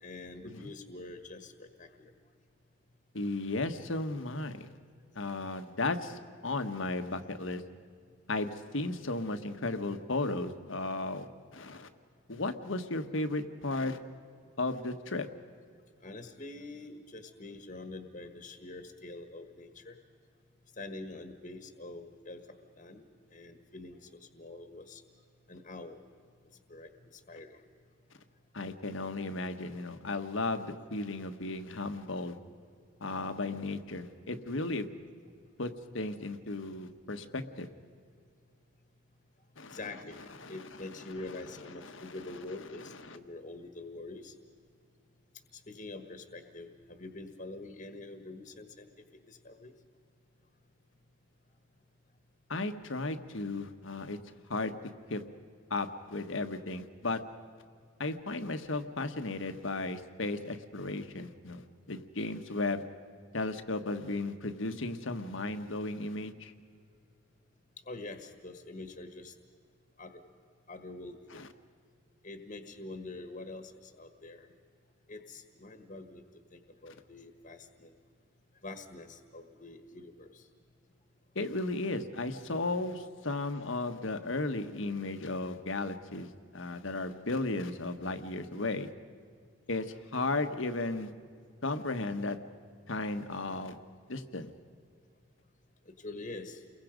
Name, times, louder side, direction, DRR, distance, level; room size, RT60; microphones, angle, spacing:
voice 1, 0.0-2.1 16.0-20.0 20.8-22.4 22.8-23.1 23.3-25.0 25.5-26.0 26.7-27.6 39.7-40.2 40.5-44.3 45.5-48.9 49.3-49.7 67.9-69.3 70.0-70.2 70.7-71.4 72.2-74.5 75.1-76.2 76.5-77.9 78.6-80.5 95.8-96.6, left 2 dB, 40° left, 6 dB, 1.5 m, -45 dB
voice 2, 3.1-4.7 5.1-7.6 8.3-11.9 12.3-14.0 14.6-15.3 28.5-32.4 33.0-34.9 35.6-37.7 39.6-39.8 40.4-40.9 41.8-42.2 43.1-43.2 52.5-54.2 54.5-54.7 55.1-55.2 55.7-57.2 58.0-62.8 63.3-66.5 71.3-71.5 81.3-88.9 89.7-91.1 91.6-92.4 92.9-93.8 94.1-94.5, left 2 dB, 70° left, 8 dB, 1.4 m, -35 dB
30.0 x 22.5 x 5.2 m, 2.2 s
head